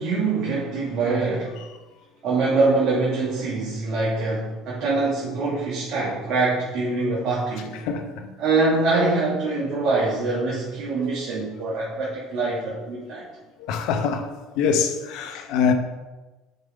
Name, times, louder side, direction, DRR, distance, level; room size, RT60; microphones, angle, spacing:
voice 1, 0.0-1.6 2.2-7.8 8.4-13.3, right 3 dB, 55° right, 2.2 m, -24 dB
voice 2, 7.8-8.3 13.6-14.3 14.5-15.7, left 6 dB, 65° left, 0.9 m, -24 dB
8.1 x 5.0 x 3.7 m
hypercardioid pair, 70°, 0 cm